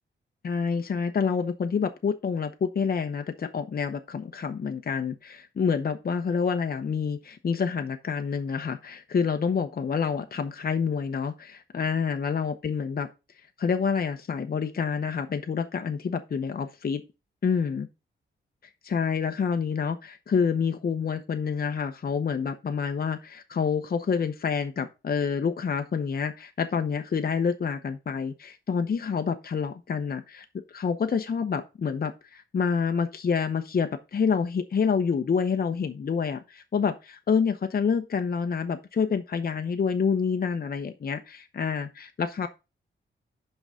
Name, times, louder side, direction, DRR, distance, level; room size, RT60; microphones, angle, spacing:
voice 1, 0.4-13.1 13.6-17.0 17.4-17.9 18.8-42.5, left 6 dB, 50° left, 0.9 m, -28 dB
5.9 x 5.5 x 4.9 m
cardioid pair, 85°, 20 cm